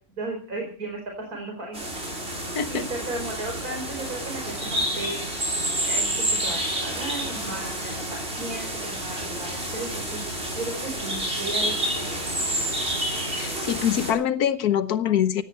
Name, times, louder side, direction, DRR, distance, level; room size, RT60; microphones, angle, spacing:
voice 1, 0.2-1.9 2.7-10.2 10.6-12.3, right 2 dB, 75° right, 2 dB, 5.1 m, -35 dB
sound 1, 1.7-14.1, right 1 dB, 45° right, 6.0 m, -29 dB
voice 2, 2.5-2.9 13.4-15.4, left 9 dB, 85° left, 11 dB, 1.6 m, -24 dB
18.0 x 17.0 x 4.5 m, 0.42 s
omnidirectional pair, 1.6 m